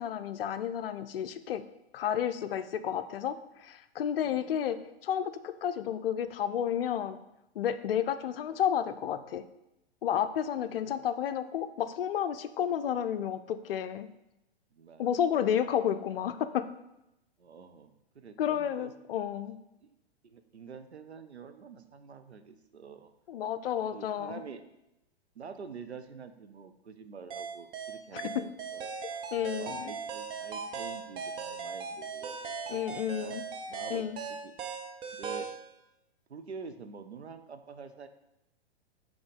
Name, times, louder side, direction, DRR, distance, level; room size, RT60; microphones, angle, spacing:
voice 1, 0.0-1.6 1.9-7.2 7.6-9.4 10.0-14.1 15.0-16.7 18.4-19.6 23.3-24.4 28.1-28.5 29.3-29.9 32.7-33.4 33.9-34.2, left 9 dB, 60° left, 11 dB, 0.5 m, -31 dB
voice 2, 10.7-11.0 14.7-15.0 17.4-17.9 18.1-18.9 19.8-20.0 20.2-23.1 23.9-24.6 25.4-29.2 29.6-32.8 33.2-33.4 33.7-34.0 34.4-34.5 35.1-35.5 36.3-38.1, right 5 dB, 85° right, 8 dB, 0.7 m, -47 dB
sound 1, 27.3-35.6, right 5 dB, 15° right, 0.4 m, -38 dB
6.0 x 3.7 x 5.1 m, 0.89 s
figure-of-eight pair, 110°, 32 cm